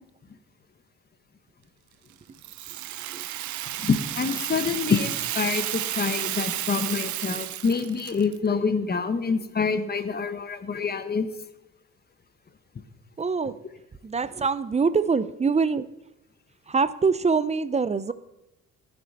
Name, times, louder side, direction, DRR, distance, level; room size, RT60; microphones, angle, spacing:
Rattle (instrument), 2.4-8.4, right 14 dB, 70° right, 0.6 m, -32 dB
voice 1, 3.8-11.3, left 5 dB, 30° left, 10 dB, 1.0 m, -26 dB
voice 2, 13.2-13.6 14.0-15.9 16.7-18.1, right 5 dB, 20° right, 16 dB, 0.5 m, -24 dB
10.5 x 10.5 x 4.1 m, 0.91 s
cardioid pair, 90°, 30 cm